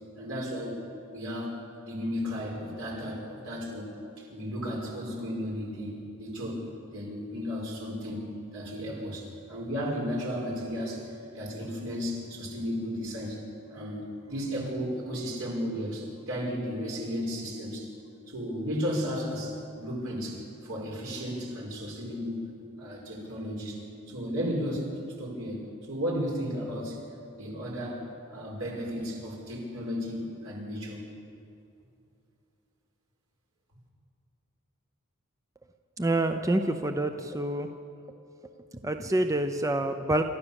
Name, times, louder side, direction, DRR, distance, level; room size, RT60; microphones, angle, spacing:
voice 1, 0.2-0.8 1.1-1.6 1.9-3.9 4.2-13.4 13.7-17.9 18.3-23.8 24.1-24.9 25.2-27.0 27.4-31.0, equal, 75° right, -2 dB, 5.4 m, -34 dB
voice 2, 36.0-37.7 38.8-40.2, right 1 dB, 15° right, 7 dB, 0.6 m, -27 dB
28.5 x 13.5 x 7.1 m, 2.6 s
head